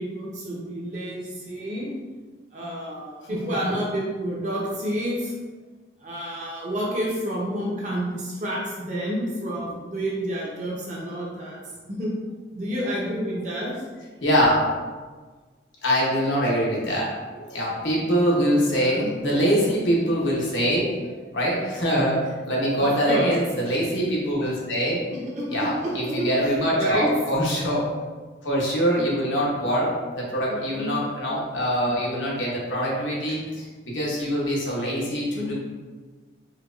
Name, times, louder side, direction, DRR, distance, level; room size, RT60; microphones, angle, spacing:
voice 1, 0.0-1.9 2.5-5.3 6.0-11.6 11.9-12.1 12.5-13.7 18.6-19.1 22.8-23.3 25.1-27.1 30.4-30.9 35.3-35.5, right 1 dB, 40° right, -5 dB, 0.8 m, -29 dB
voice 2, 14.2-14.7 15.8-25.0 25.5-27.9 28.4-35.5, equal, 85° left, -4 dB, 1.0 m, -24 dB
4.4 x 2.3 x 2.5 m, 1.4 s
head